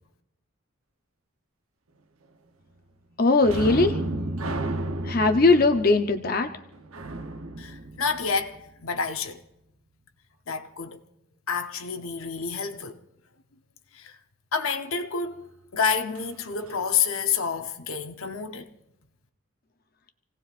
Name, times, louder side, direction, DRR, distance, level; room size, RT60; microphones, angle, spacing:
voice 1, 3.2-4.0 5.1-6.5, left 3 dB, 45° left, 0.7 m, -20 dB
sound 1, 3.4-8.8 16.1-16.3 16.7-16.8, right 2 dB, 90° right, 0.9 m, -33 dB
voice 2, 7.6-8.6 8.8-9.4 10.5-11.0 11.5-13.0 13.9-14.1 14.5-18.7, left 6 dB, 85° left, 0.9 m, -29 dB
28.0 x 17.5 x 2.5 m
head